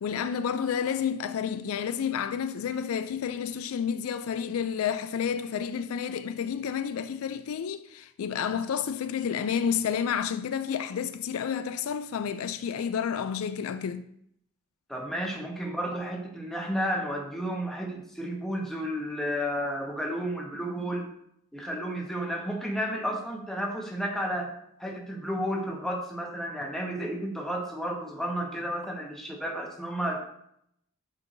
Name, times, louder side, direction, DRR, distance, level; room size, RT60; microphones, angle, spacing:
voice 1, 0.0-14.0, left 7 dB, 80° left, 0.4 m, -30 dB
voice 2, 14.9-21.1 21.5-30.2, equal, ahead, 1.0 m, -32 dB
7.9 x 4.5 x 2.6 m
head